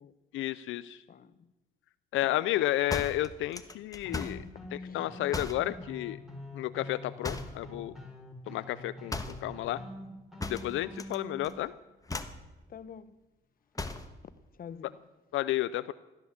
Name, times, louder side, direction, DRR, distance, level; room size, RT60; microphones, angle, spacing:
voice 1, 0.3-1.0 2.1-4.4 4.9-6.2 6.5-7.9 8.5-9.8 10.5-11.7 15.3-15.9, left 15 dB, 85° left, 0.5 m, -32 dB
voice 2, 1.1-1.5 2.2-2.4 4.2-4.3 4.8-5.1 12.7-13.2 14.5-15.1, left 7 dB, 45° left, 0.9 m, -48 dB
sound 1, 2.9-4.5 5.3-5.7 7.2-7.7 9.1-9.5 10.4-11.2 11.4-11.7 12.1-12.4 13.7-14.1, left 3 dB, 15° left, 1.3 m, -37 dB
sound 2, 4.0-11.5, left 1 dB, ahead, 4.0 m, -45 dB
16.5 x 11.0 x 7.2 m
cardioid pair, 90°, 20 cm